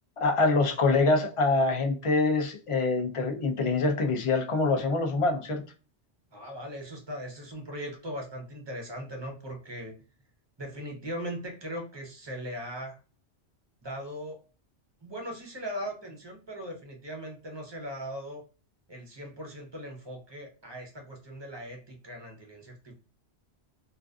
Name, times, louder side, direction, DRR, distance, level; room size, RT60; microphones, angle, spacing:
voice 1, 0.2-5.6, left 3 dB, 50° left, 3 dB, 0.4 m, -25 dB
voice 2, 6.3-9.9 10.6-13.0 13.8-14.4 15.0-18.4 18.9-22.9, equal, 30° right, 2 dB, 0.6 m, -39 dB
2.4 x 2.4 x 2.3 m, 0.36 s
omnidirectional pair, 1.1 m